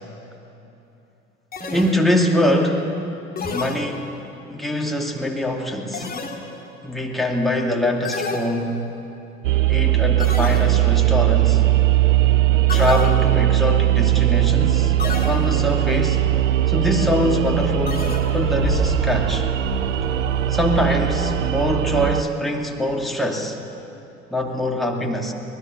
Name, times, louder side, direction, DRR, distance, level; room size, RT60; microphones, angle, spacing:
sound 1, 1.5-2.4 3.4-4.4 5.9-6.8 8.0-9.1 10.2-11.0 12.7-13.6 15.0-15.8 17.9-18.7, left 4 dB, 25° left, 2.6 m, -31 dB
voice 1, 1.7-2.9 3.5-4.1 4.5-6.1 6.8-8.8 9.7-11.6 12.7-14.9 15.2-16.2 16.7-19.5 20.5-23.6 24.3-25.3, left 1 dB, ahead, 0 dB, 2.6 m, -23 dB
sound 2, 9.4-22.2, right 14 dB, 80° right, 0.5 m, -19 dB
sound 3, 14.3-22.2, left 3 dB, 75° left, 2.5 m, -32 dB
24.5 x 20.0 x 6.9 m, 2.8 s
figure-of-eight pair, 65°, 37 cm